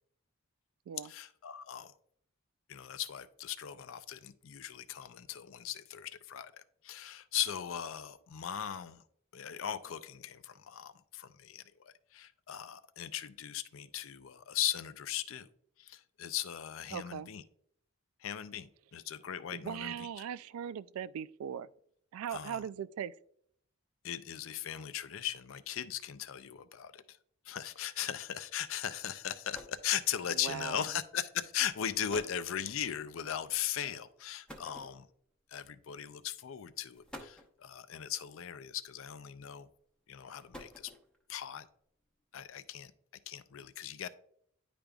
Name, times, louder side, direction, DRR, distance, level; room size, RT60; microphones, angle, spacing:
voice 1, 1.0-1.9 2.7-9.0 9.3-15.5 15.8-17.4 18.2-20.1 22.3-22.6 24.0-27.2 27.5-35.1 35.5-39.7 40.1-40.9 41.3-41.7 42.3-42.9 43.3-44.1, left 10 dB, 65° left, 0.4 m, -38 dB
voice 2, 16.9-17.3 19.5-21.7 22.1-23.1 30.3-30.9, right 8 dB, 85° right, 0.3 m, -39 dB
sound 1, 29.3-29.9 30.9-31.1 31.8-31.9 32.1-32.5 34.5-35.3 36.3-36.4 36.9-37.6 38.9-39.3 40.2-41.2, equal, 5° left, 0.7 m, -50 dB
10.0 x 5.1 x 2.3 m
head